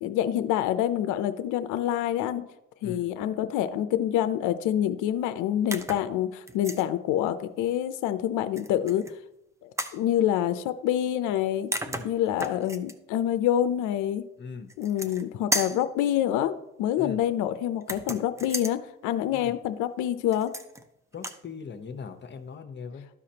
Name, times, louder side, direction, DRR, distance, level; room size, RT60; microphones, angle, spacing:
voice 1, 0.0-2.4 2.8-9.0 9.6-11.7 12.0-14.2 14.8-20.5, left 11 dB, 80° left, 10 dB, 0.5 m, -27 dB
sound 1, 5.7-6.1 6.5-6.9 8.6-9.1 9.8-10.0 11.4-11.5 11.7-12.9 14.7-15.2 15.5-15.9 17.8-18.8 20.3-20.8 21.1-21.4, right 1 dB, 10° right, 0.7 m, -33 dB
voice 2, 14.4-14.7 17.0-17.2 19.3-19.6 21.1-23.1, left 5 dB, 35° left, 7 dB, 1.0 m, -40 dB
13.0 x 4.9 x 2.9 m, 0.86 s
supercardioid pair, 80°, 30 cm